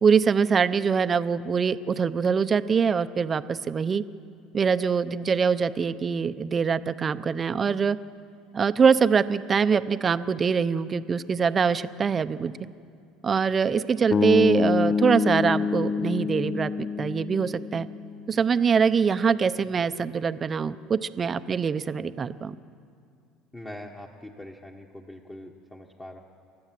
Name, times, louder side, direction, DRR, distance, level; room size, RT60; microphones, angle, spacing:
voice 1, 0.0-4.0 4.5-8.0 8.5-12.5 13.2-16.7 17.0-17.9 18.3-22.6, right 6 dB, 30° right, 13 dB, 0.7 m, -23 dB
sound 1, 14.1-18.3, left 5 dB, 30° left, 0.6 m, -26 dB
voice 2, 23.5-26.2, left 1 dB, 15° left, 0 dB, 1.3 m, -42 dB
29.0 x 13.5 x 7.6 m, 2.4 s
supercardioid pair, 120°, 0 cm